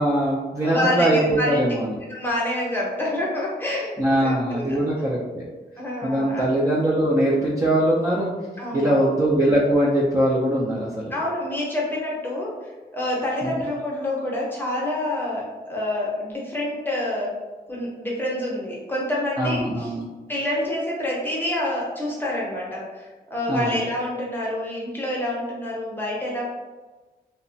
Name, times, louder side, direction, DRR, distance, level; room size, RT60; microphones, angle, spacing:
voice 1, 0.0-1.9 4.0-5.4 6.0-8.3 8.7-11.1 13.4-13.5 19.4-20.0 23.5-23.8, right 1 dB, 20° right, -6 dB, 0.4 m, -21 dB
voice 2, 0.6-1.7 2.1-4.8 5.8-6.5 8.6-9.0 11.1-17.4 17.7-19.9 20.3-26.4, left 1 dB, 10° left, -5 dB, 0.7 m, -27 dB
2.9 x 2.1 x 2.6 m, 1.2 s
wide cardioid pair, 130°, 17 cm